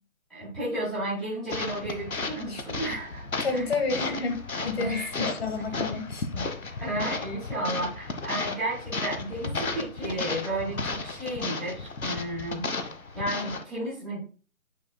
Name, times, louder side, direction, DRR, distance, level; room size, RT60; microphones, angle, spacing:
voice 1, 0.3-3.7 4.8-5.3 5.9-6.0 6.3-6.5 6.8-12.6 13.1-14.2, right 1 dB, ahead, -9 dB, 1.4 m, -33 dB
sound 1, 1.5-13.6, left 3 dB, 75° left, 1.3 m, -34 dB
voice 2, 3.4-5.0 5.4-6.3, left 4 dB, 45° left, 5 dB, 1.8 m, -30 dB
9.5 x 5.2 x 2.3 m, 0.37 s
figure-of-eight pair, 160°, 42 cm